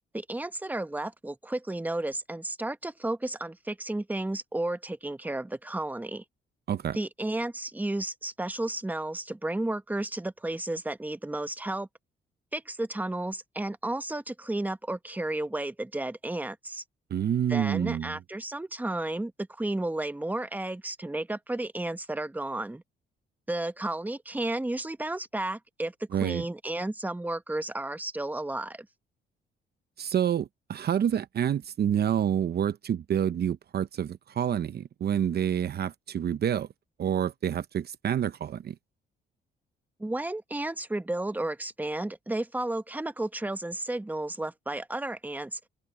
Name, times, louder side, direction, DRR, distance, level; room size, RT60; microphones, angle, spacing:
voice 1, 0.1-6.2 6.9-11.9 12.5-16.8 17.5-22.8 23.5-28.9 40.0-45.6, right 2 dB, 10° right, 1.2 m, -32 dB
voice 2, 17.1-18.2 26.1-26.4 30.0-36.7 37.0-38.7, right 9 dB, 55° right, 0.8 m, -28 dB
cardioid pair, 90°, 20 cm